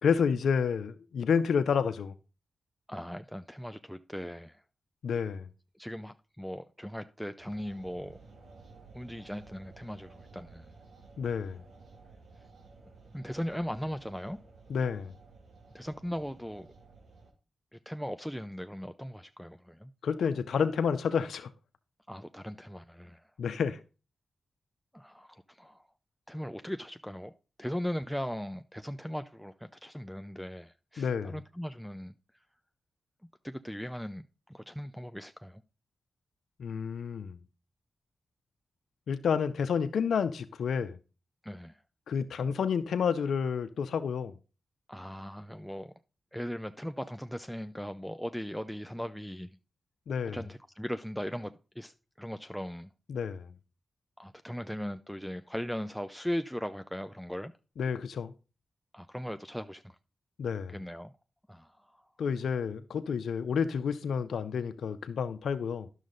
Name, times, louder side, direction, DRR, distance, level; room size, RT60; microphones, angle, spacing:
voice 1, 0.0-2.1 5.0-5.5 11.2-11.6 14.7-15.1 20.0-21.5 23.4-23.8 31.0-31.3 36.6-37.4 39.1-41.0 42.1-44.3 50.1-50.4 53.1-53.5 57.8-58.3 60.4-60.7 62.2-65.9, left 6 dB, 85° left, 0.5 m, -30 dB
voice 2, 2.9-4.6 5.8-8.2 8.9-10.7 13.1-14.4 15.7-16.7 17.7-19.9 22.1-23.3 24.9-25.8 26.3-27.3 27.6-32.2 33.4-35.6 41.4-41.8 44.9-45.9 46.3-49.6 50.2-52.9 54.2-57.5 58.9-60.0 60.7-61.1 61.5-62.0, equal, ahead, 0.5 m, -38 dB
sound 1, 7.4-17.3, right 3 dB, 85° right, 2.1 m, -55 dB
10.5 x 6.4 x 3.9 m
cardioid pair, 45°, 0 cm